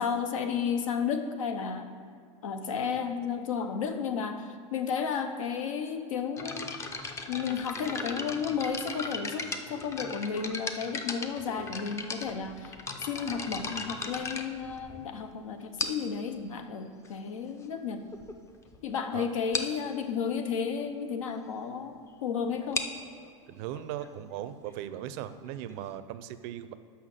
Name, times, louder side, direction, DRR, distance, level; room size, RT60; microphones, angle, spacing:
voice 1, 0.0-1.9 2.4-6.7 7.3-18.0 18.8-22.9, left 6 dB, 85° left, 7 dB, 0.8 m, -33 dB
sound 1, 6.4-15.2 15.8-16.2 17.0-17.1 17.8-17.9 18.1-18.3 18.7-18.8 19.0-19.1 19.5-19.8 22.5-26.0, left 3 dB, 15° left, 0.5 m, -37 dB
voice 2, 23.5-26.7, right 11 dB, 50° right, 13 dB, 0.5 m, -38 dB
5.7 x 5.7 x 6.3 m, 2.3 s
supercardioid pair, 130°, 17 cm